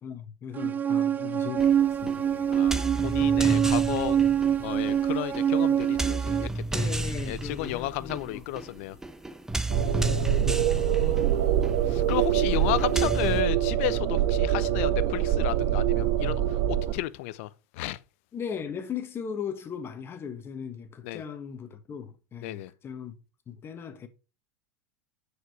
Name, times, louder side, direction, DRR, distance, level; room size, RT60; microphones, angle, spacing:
voice 1, 0.0-2.6 6.7-8.4 9.8-11.2 18.3-23.1 23.5-24.1, left 7 dB, 30° left, 1.4 m, -38 dB
sound 1, 0.6-6.5, right 9 dB, 20° right, 0.3 m, -25 dB
sound 2, 1.6-13.4, right 2 dB, 5° right, 0.8 m, -33 dB
voice 2, 2.5-4.2 4.6-6.8 7.2-9.0 10.7-18.0 21.0-21.2 22.4-22.7, left 16 dB, 60° left, 0.7 m, -33 dB
sound 3, 9.7-16.9, right 11 dB, 55° right, 1.4 m, -25 dB
9.1 x 5.0 x 4.8 m
hypercardioid pair, 95°, 8 cm